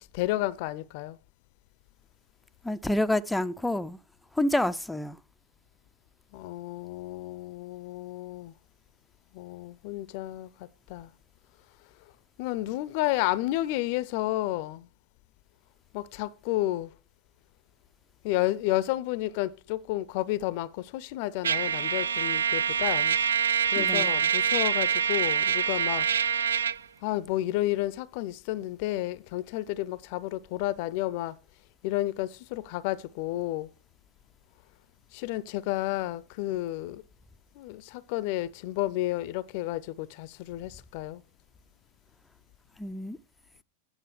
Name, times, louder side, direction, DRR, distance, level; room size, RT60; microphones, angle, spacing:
voice 1, 0.1-1.2 6.3-8.5 9.3-11.1 12.4-14.9 15.9-16.9 18.2-23.2 23.7-26.1 27.0-31.4 31.8-33.7 35.1-37.0 37.6-41.2, left 16 dB, 50° left, 0.5 m, -31 dB
voice 2, 2.6-4.0 4.4-5.2 23.8-24.1 42.8-43.2, left 1 dB, 5° left, 0.4 m, -28 dB
Trumpet, 21.4-26.8, right 8 dB, 75° right, 0.4 m, -25 dB
9.1 x 7.1 x 6.5 m
figure-of-eight pair, 95°, 0 cm